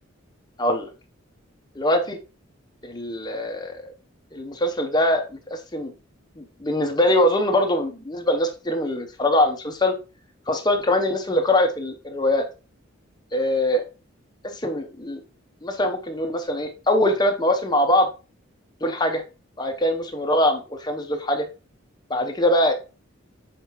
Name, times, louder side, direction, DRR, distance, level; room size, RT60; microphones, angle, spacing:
voice 1, 0.6-0.9 1.8-2.2 2.8-3.9 4.3-5.9 6.4-9.9 10.5-12.5 13.3-13.8 14.6-15.2 15.6-18.1 18.8-19.2 19.6-21.5 22.1-22.7, left 1 dB, 20° left, 5 dB, 0.7 m, -22 dB
7.4 x 4.5 x 2.9 m, 0.32 s
head